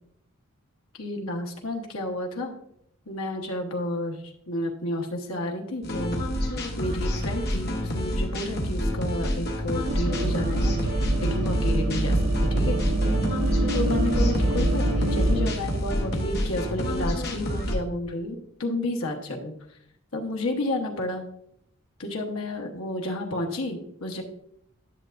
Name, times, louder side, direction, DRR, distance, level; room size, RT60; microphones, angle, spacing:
voice 1, 1.0-2.5 3.1-6.2 6.8-10.7 11.2-12.2 12.5-12.8 13.7-19.8 20.1-21.2 22.0-24.2, left 1 dB, 80° left, 1 dB, 1.1 m, -31 dB
sound 1, 5.8-17.7, equal, 50° left, 1.1 m, -28 dB
sound 2, 9.9-15.5, right 1 dB, 80° right, 1.0 m, -25 dB
10.5 x 6.7 x 2.5 m, 0.73 s
head